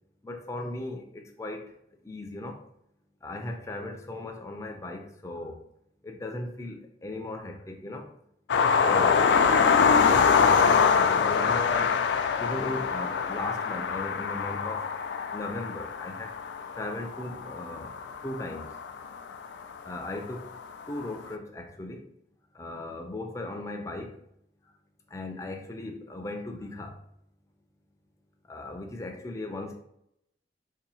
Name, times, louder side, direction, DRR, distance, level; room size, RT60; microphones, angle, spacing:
voice 1, 0.2-1.7 2.0-2.6 3.2-5.6 6.0-8.1 8.8-9.7 10.1-10.9 11.2-11.9 12.4-14.9 15.3-16.3 16.8-18.7 19.8-20.5 20.9-22.0 22.5-24.2 25.1-26.9 28.5-29.7, left 2 dB, 15° left, 3 dB, 0.4 m, -37 dB
sound 1, 8.5-19.6 20.6-20.7 21.0-21.1, left 6 dB, 90° left, 0.3 m, -24 dB
2.8 x 2.6 x 4.0 m, 0.75 s
head